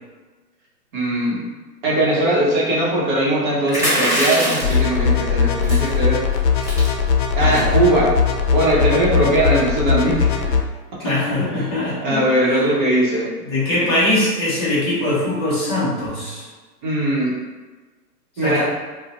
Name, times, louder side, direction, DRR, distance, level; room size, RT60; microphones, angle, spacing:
voice 1, 0.9-1.5 1.8-6.2 7.4-8.1 8.5-10.5 11.4-11.7 12.0-13.3 16.8-17.3 18.4-18.6, right 1 dB, 30° right, -6 dB, 0.7 m, -20 dB
sound 1, 3.7-4.8 5.6-5.9 6.3-6.4 6.6-6.9 7.4-7.7, equal, 5° right, 1.1 m, -22 dB
sound 2, 4.6-10.6, left 6 dB, 80° left, 0.5 m, -19 dB
voice 2, 7.4-7.8 11.0-12.6 13.4-16.5 18.4-18.6, left 1 dB, 20° left, -10 dB, 0.4 m, -22 dB
2.5 x 2.0 x 2.8 m, 1.3 s
hypercardioid pair, 140°, 49 cm